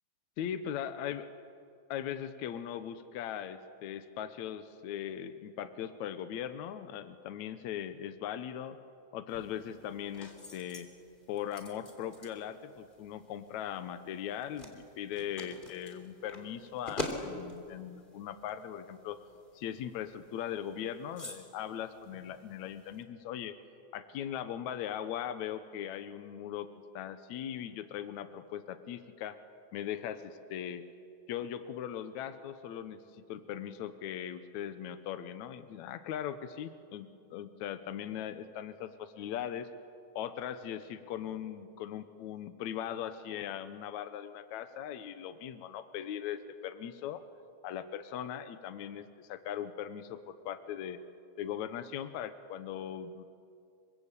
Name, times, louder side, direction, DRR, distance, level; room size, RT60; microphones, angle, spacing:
voice 1, 0.4-1.3 1.9-8.8 9.1-10.9 11.3-19.2 19.5-23.6 23.9-26.7 26.9-29.4 29.7-30.8 31.3-39.7 40.1-47.2 47.6-51.0 51.4-53.3, left 10 dB, 75° left, 11 dB, 2.3 m, -39 dB
sound 1, 9.3-23.0, left 1 dB, 15° left, 3.2 m, -47 dB
28.0 x 24.5 x 8.4 m, 2.4 s
omnidirectional pair, 3.4 m